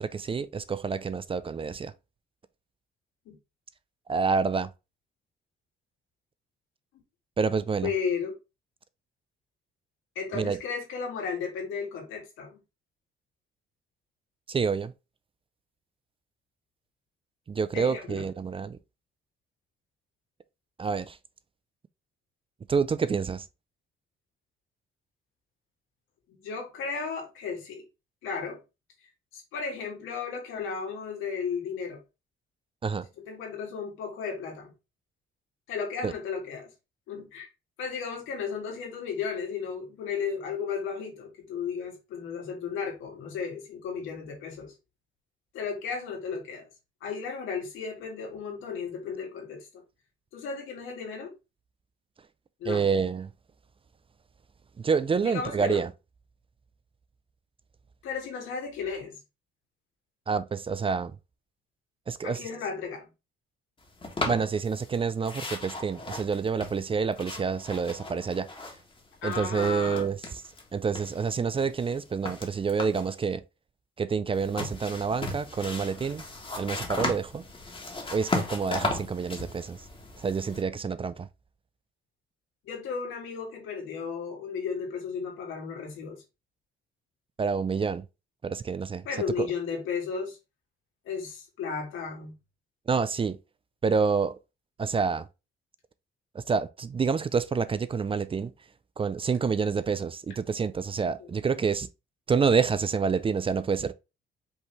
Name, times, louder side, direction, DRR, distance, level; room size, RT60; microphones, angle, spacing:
voice 1, 0.0-1.9 4.1-4.7 7.4-7.9 10.3-10.6 14.5-14.9 17.5-18.8 20.8-21.2 22.7-23.5 32.8-33.1 36.0-36.1 52.6-53.3 54.8-55.9 60.3-61.1 62.1-62.4 64.2-68.5 69.2-70.2 70.7-73.4 74.0-76.2 76.6-77.4 78.1-79.8 80.2-81.3 87.4-88.0 88.4-89.1 89.4-89.5 92.9-93.4 93.8-94.4 94.8-95.3 96.3-98.5 99.0-101.9 102.3-103.9, right 5 dB, 25° right, 0.4 m, -28 dB
voice 2, 7.8-8.3 10.2-12.6 17.7-18.2 26.3-27.8 28.2-28.6 29.3-32.0 33.2-34.7 35.7-36.7 37.1-37.5 37.8-44.7 45.5-46.7 47.0-49.8 50.3-51.3 52.6-52.8 55.2-55.8 58.0-59.2 62.2-63.1 69.2-70.1 82.6-86.2 89.1-90.4 91.1-92.3 101.2-101.3, left 6 dB, 90° left, 2.1 m, -34 dB
sound 1, 64.0-65.0 65.2-69.0 69.2-70.6 71.0-73.2 74.3-80.6, left 2 dB, 25° left, 1.5 m, -36 dB
5.3 x 2.9 x 3.4 m
cardioid pair, 90°, 20 cm